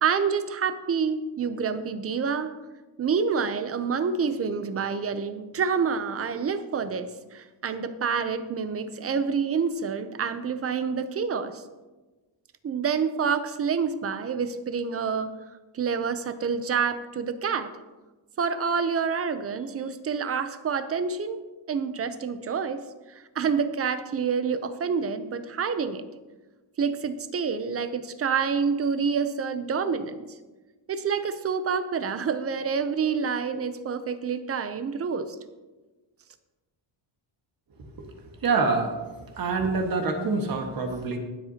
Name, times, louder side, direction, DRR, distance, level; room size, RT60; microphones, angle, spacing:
voice 1, 0.0-2.5 3.0-11.6 12.6-15.4 15.7-17.7 18.4-21.4 21.7-22.8 23.1-26.0 26.8-30.3 30.9-35.4, right 6 dB, 30° right, 11 dB, 0.6 m, -27 dB
voice 2, 37.8-39.0 39.4-41.2, right 4 dB, 50° right, 3 dB, 1.7 m, -26 dB
21.5 x 7.9 x 2.9 m, 1.2 s
wide cardioid pair, 170°, 44 cm